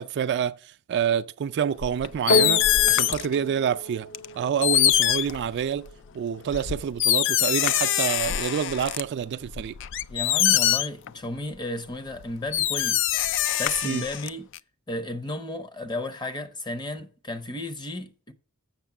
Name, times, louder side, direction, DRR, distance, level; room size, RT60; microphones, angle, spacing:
voice 1, 0.0-4.1 4.4-5.9 6.1-9.7 13.8-14.0, right 8 dB, 50° right, 0.3 m, -27 dB
sound 1, 1.8-3.3 4.1-4.2 4.6-5.9 6.5-9.0 9.5-11.1 12.2-12.3 12.5-14.6, left 12 dB, 55° left, 0.3 m, -23 dB
sound 2, 2.3-10.9 11.6-11.7, left 1 dB, 80° left, 1.6 m, -33 dB
voice 2, 10.1-13.2 13.6-14.5 14.9-18.3, left 2 dB, 20° left, 0.7 m, -33 dB
7.3 x 6.0 x 5.8 m
head